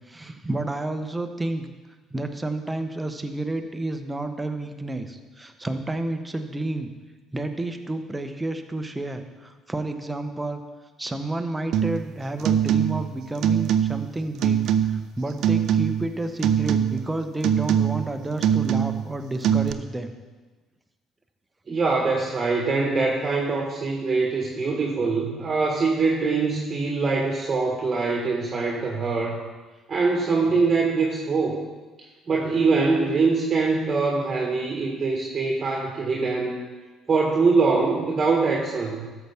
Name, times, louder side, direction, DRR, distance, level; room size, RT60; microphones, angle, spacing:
voice 1, 0.1-1.7 2.1-6.9 7.3-10.6 11.0-14.6 14.9-20.1, right 2 dB, 15° right, 7 dB, 1.0 m, -30 dB
sound 1, 11.7-12.1 12.4-13.1 13.4-14.1 14.4-15.1 15.4-16.1 16.4-17.1 17.4-18.1 18.4-19.1 19.4-19.7, right 9 dB, 65° right, 0.5 m, -22 dB
voice 2, 21.7-29.4 29.9-31.6 32.3-36.6 37.1-39.1, right 4 dB, 40° right, -2 dB, 1.5 m, -23 dB
13.5 x 7.0 x 3.6 m, 1.3 s
hypercardioid pair, 55°, 0 cm